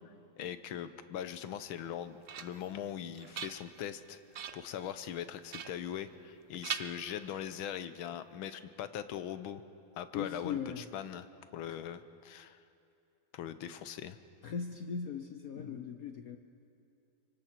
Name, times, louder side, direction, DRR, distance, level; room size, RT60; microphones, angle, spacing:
voice 1, 0.4-4.2 4.5-9.6 10.0-12.6 13.3-14.2, left 10 dB, 90° left, 11 dB, 1.7 m, -41 dB
sound 1, 1.8-2.8 3.2-3.9 4.3-4.8 5.5-6.4 6.6-7.6, right 8 dB, 85° right, 0.6 m, -43 dB
voice 2, 10.1-10.8 14.4-16.4, left 7 dB, 60° left, 6 dB, 1.0 m, -38 dB
25.5 x 24.0 x 4.5 m, 2.7 s
omnidirectional pair, 2.2 m